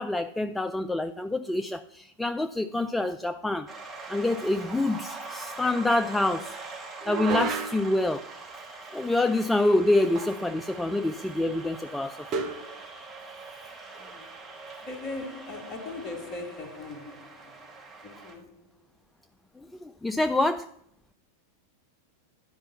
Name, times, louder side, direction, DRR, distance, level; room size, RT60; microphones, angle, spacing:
voice 1, 0.0-3.7 4.1-6.5 7.1-8.2 8.9-12.2 20.0-20.7, left 2 dB, 5° left, 0.4 m, -26 dB
sound 1, 3.7-18.3, right 3 dB, 15° right, 2.2 m, -43 dB
sound 2, 7.0-8.0 10.2-10.5 10.8-10.9 12.3-12.7, right 4 dB, 35° right, 1.6 m, -31 dB
voice 2, 14.0-14.3 14.9-17.7 18.0-18.7, left 3 dB, 30° left, 1.6 m, -39 dB
10.0 x 5.4 x 7.0 m
figure-of-eight pair, 90°, 0 cm